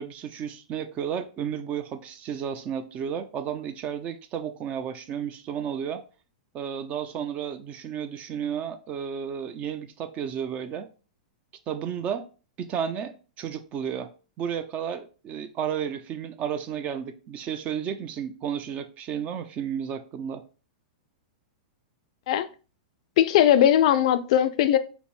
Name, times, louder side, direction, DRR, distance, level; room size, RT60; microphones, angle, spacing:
voice 1, 0.0-6.0 6.5-10.9 11.7-12.3 12.6-14.1 14.4-20.4, right 8 dB, 35° right, 0.5 m, -32 dB
voice 2, 23.2-24.8, left 10 dB, 55° left, 0.4 m, -19 dB
5.1 x 2.1 x 3.0 m
hypercardioid pair, 105°, 4 cm